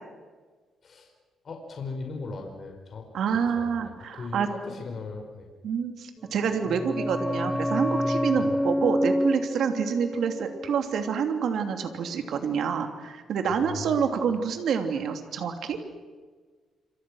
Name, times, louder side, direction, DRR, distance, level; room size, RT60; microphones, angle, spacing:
voice 1, 1.4-5.5 8.3-8.6 13.5-14.1, left 4 dB, 45° left, 3 dB, 5.1 m, -39 dB
voice 2, 3.1-4.5 5.6-15.8, right 6 dB, 65° right, 6 dB, 3.0 m, -27 dB
sound 1, 6.3-11.7 11.9-12.0, equal, 5° left, 0.7 m, -29 dB
27.5 x 26.0 x 6.5 m, 1.4 s
cardioid pair, 120°, 0 cm